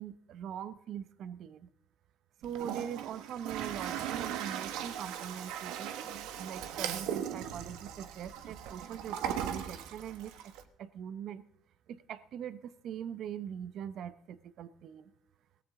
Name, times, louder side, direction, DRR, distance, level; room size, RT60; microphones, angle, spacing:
voice 1, 0.0-1.7 2.4-10.5 10.8-11.4 11.9-15.1, right 9 dB, 60° right, 14 dB, 0.8 m, -42 dB
Toilet flush, 2.4-10.6, right 9 dB, 80° right, 1.1 m, -38 dB
17.5 x 14.5 x 3.7 m, 0.75 s
cardioid pair, 100°, 0 cm